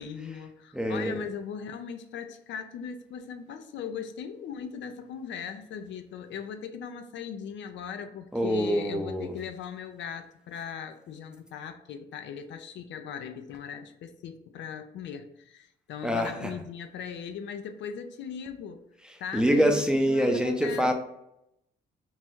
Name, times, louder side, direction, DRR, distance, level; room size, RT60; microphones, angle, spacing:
voice 1, 0.0-18.8 19.2-19.7 20.1-20.9, left 7 dB, 65° left, 9 dB, 0.4 m, -39 dB
voice 2, 0.7-1.2 8.3-9.3 16.0-16.5 19.0-20.9, equal, 5° right, 3 dB, 0.5 m, -25 dB
3.0 x 2.2 x 4.2 m, 0.81 s
cardioid pair, 90°, 20 cm